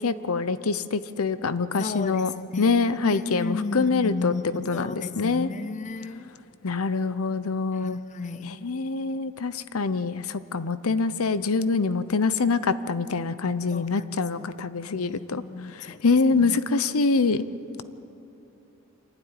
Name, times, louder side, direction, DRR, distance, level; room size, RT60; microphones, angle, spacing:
voice 1, 0.0-5.5 6.6-8.0 8.4-15.4 15.7-17.5, left 4 dB, 80° left, 0.8 m, -25 dB
voice 2, 1.8-6.2 7.8-8.5 13.7-14.1 15.0-16.0 16.4-16.6, left 4 dB, 35° left, 0.5 m, -34 dB
26.0 x 12.5 x 9.9 m
head